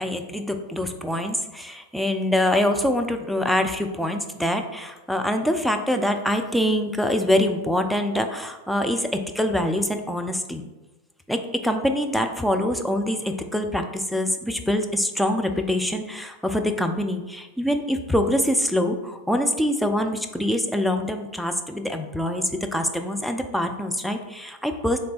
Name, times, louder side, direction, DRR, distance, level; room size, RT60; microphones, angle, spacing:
voice 1, 0.0-10.6 11.3-25.0, left 1 dB, ahead, 5 dB, 0.4 m, -24 dB
3.3 x 3.2 x 3.9 m, 1.1 s
figure-of-eight pair, 90°, 0 cm